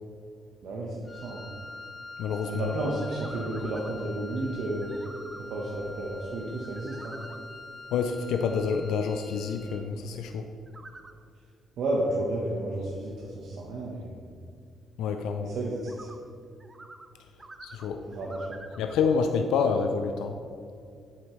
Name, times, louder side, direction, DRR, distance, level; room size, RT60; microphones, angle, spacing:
voice 1, 0.6-1.4 2.5-4.9 5.4-7.2 11.8-14.2 15.4-16.1 18.1-18.6, right 1 dB, 70° right, -4 dB, 1.1 m, -32 dB
Wind instrument woodwind instrument, 1.0-9.9, left 2 dB, 20° left, 0.6 m, -45 dB
voice 2, 2.2-2.7 7.9-10.5 15.0-15.5 17.6-18.0 18.8-20.4, left 5 dB, 85° left, 6 dB, 0.4 m, -28 dB
sound 1, 3.0-4.0 4.8-5.4 6.6-7.4 10.7-11.1 15.8-16.2 16.6-17.1 17.4-18.9, right 2 dB, 25° right, 0.5 m, -47 dB
8.4 x 7.3 x 3.2 m, 2.4 s
cardioid pair, 90°, 0 cm